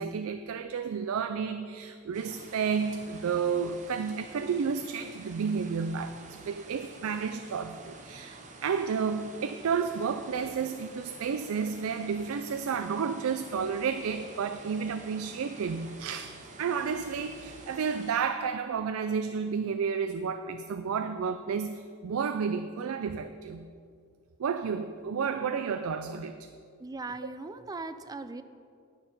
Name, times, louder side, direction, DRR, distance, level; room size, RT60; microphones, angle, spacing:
voice 1, 0.0-23.7 24.4-26.5, right 6 dB, 85° right, 9 dB, 0.4 m, -31 dB
sound 1, 2.1-18.1, right 3 dB, 35° right, 0.9 m, -49 dB
voice 2, 26.8-28.4, right 3 dB, 20° right, 12 dB, 0.4 m, -39 dB
11.0 x 6.7 x 5.4 m, 2.3 s
head